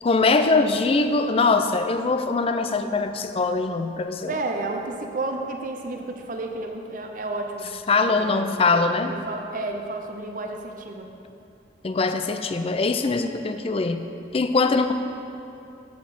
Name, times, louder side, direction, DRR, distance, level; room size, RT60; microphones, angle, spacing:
voice 1, 0.0-4.4 7.9-9.2 11.8-14.0 14.3-14.9, left 3 dB, 35° left, 8 dB, 0.4 m, -22 dB
voice 2, 4.3-7.7 8.1-11.1, right 2 dB, 50° right, 3 dB, 0.7 m, -32 dB
7.8 x 5.1 x 6.8 m, 2.7 s
head